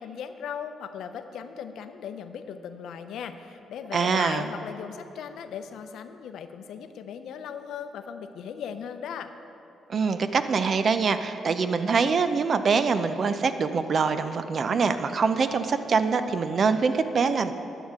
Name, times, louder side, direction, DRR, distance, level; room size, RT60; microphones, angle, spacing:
voice 1, 0.0-9.3, left 7 dB, 75° left, 9 dB, 0.6 m, -38 dB
voice 2, 3.9-4.5 9.9-17.5, right 5 dB, 50° right, 10 dB, 0.5 m, -24 dB
13.5 x 9.1 x 3.7 m, 2.9 s
cardioid pair, 90°, 0 cm